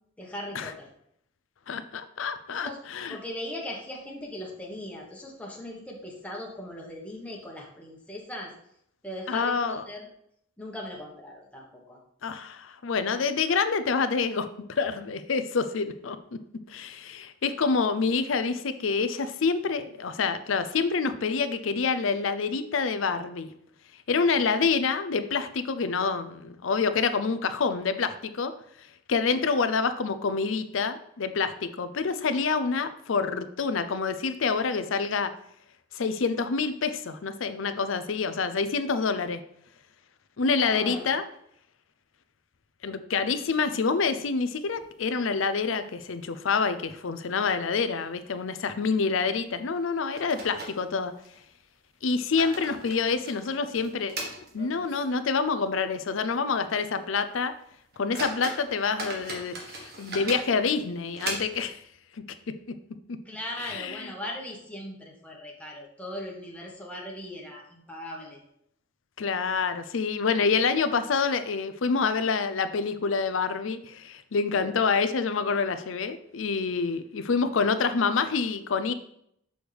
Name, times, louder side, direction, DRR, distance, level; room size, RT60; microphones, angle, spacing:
voice 1, 0.2-0.9 2.6-2.8 3.1-8.5 9.0-10.1 10.6-12.0 40.4-41.1 63.2-68.4, left 1 dB, 5° left, -2 dB, 1.3 m, -39 dB
voice 2, 1.7-3.2 9.3-9.8 12.2-16.2 16.7-23.5 24.1-28.5 29.1-35.3 35.9-39.4 40.4-41.2 42.8-51.1 52.0-57.5 58.0-61.8 63.6-64.0 69.2-78.9, left 5 dB, 80° left, 11 dB, 0.5 m, -27 dB
sound 1, 43.4-44.4 44.7-44.8 45.2-45.3 45.9-46.4 46.7-46.8 47.4-47.6 47.9-48.1 49.4-49.5 50.2-51.4 52.0-55.2 55.6-55.7 56.2-56.3 56.8-56.9 57.5-57.6 57.9-61.8, right 2 dB, 55° right, 1.5 m, -39 dB
6.3 x 6.2 x 3.4 m, 0.72 s
head